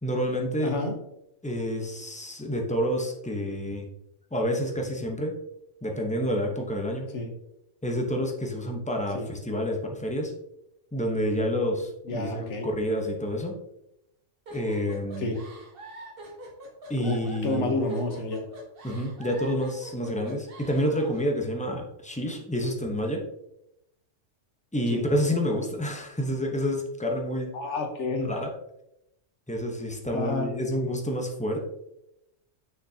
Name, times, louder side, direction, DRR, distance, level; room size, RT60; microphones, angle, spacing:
voice 1, 0.0-0.7 1.4-3.9 4.3-5.4 5.8-7.1 7.8-10.3 10.9-13.6 14.5-15.3 16.9-17.7 18.8-23.2 24.7-27.6 28.3-28.5 29.5-31.6, equal, 5° left, 1 dB, 0.8 m, -29 dB
voice 2, 0.6-1.0 7.1-7.3 9.1-9.3 12.1-12.7 15.2-15.4 17.0-18.4 18.9-19.0 24.9-25.1 27.5-28.3 30.1-30.5, left 2 dB, 70° left, 4 dB, 1.4 m, -29 dB
sound 1, 14.5-21.3, right 1 dB, 50° right, 1.3 m, -44 dB
6.3 x 6.2 x 2.8 m, 0.82 s
omnidirectional pair, 1.3 m